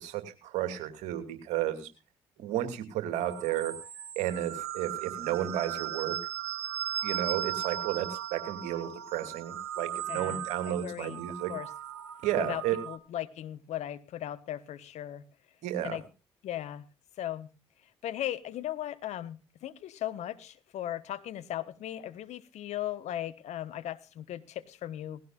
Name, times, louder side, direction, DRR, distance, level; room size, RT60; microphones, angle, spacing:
voice 1, 0.0-1.9 2.4-3.7 4.2-6.1 7.0-11.5 12.2-12.8 15.6-16.0, right 11 dB, 65° right, 9 dB, 2.6 m, -32 dB
sound 1, 3.1-13.0, right 11 dB, 85° right, 1.1 m, -37 dB
voice 2, 10.1-11.2 11.5-11.7 12.4-15.2 15.8-16.0 16.4-16.8 17.2-17.5 18.0-25.2, left 12 dB, 60° left, 14 dB, 1.2 m, -37 dB
18.5 x 16.0 x 2.5 m, 0.32 s
hypercardioid pair, 45°, 13 cm